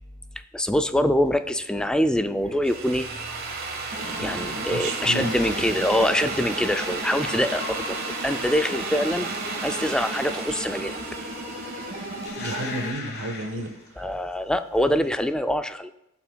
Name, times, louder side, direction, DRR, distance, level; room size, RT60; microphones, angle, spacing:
voice 1, 0.5-3.1 4.2-11.0 14.0-15.9, equal, 5° left, 9 dB, 0.3 m, -24 dB
sound 1, 1.3-14.3 14.6-15.2, left 3 dB, 50° left, 1.2 m, -42 dB
Drill, 2.5-12.3, right 4 dB, 50° right, 1.1 m, -34 dB
sound 2, 3.9-12.9, equal, 30° right, 2.8 m, -36 dB
voice 2, 4.0-5.4 12.3-14.1, right 1 dB, 75° right, 6 dB, 1.1 m, -33 dB
15.5 x 5.7 x 2.3 m, 0.88 s
head